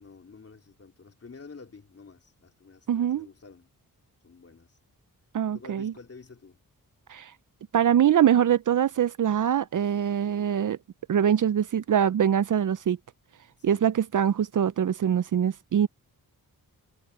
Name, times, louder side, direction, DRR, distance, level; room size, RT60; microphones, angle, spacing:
voice 1, 0.0-3.7 4.2-4.8 5.5-6.6 13.6-13.9, left 4 dB, 40° left, 3.4 m, -49 dB
voice 2, 2.9-3.3 5.3-5.9 7.1-7.3 7.7-10.8 11.1-13.0 13.6-15.9, right 9 dB, 60° right, 0.5 m, -23 dB
wide cardioid pair, 165°, 36 cm